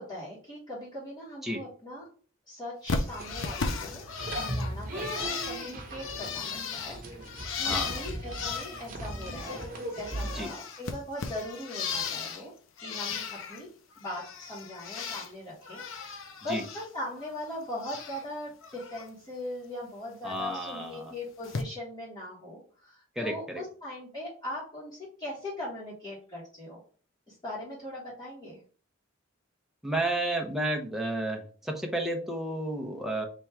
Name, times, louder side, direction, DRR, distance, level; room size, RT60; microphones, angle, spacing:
voice 1, 0.0-2.1 2.5-7.0 7.5-12.5 12.8-13.7 14.0-26.8 27.3-28.6, left 1 dB, 20° left, -9 dB, 1.7 m, -40 dB
Bird, 2.9-9.7 9.9-12.4 12.8-13.6 14.0-15.3 15.6-16.9 17.2-18.2 18.6-19.0 20.3-20.4 21.4-21.6, left 5 dB, 75° left, 0.6 m, -36 dB
sound 1, 3.1-10.5, right 1 dB, 40° right, 0.9 m, -38 dB
voice 2, 10.2-10.5 16.5-16.6 20.2-21.1 23.2-23.6 29.8-33.3, right 1 dB, ahead, 2 dB, 0.7 m, -32 dB
3.5 x 3.0 x 4.4 m, 0.42 s
head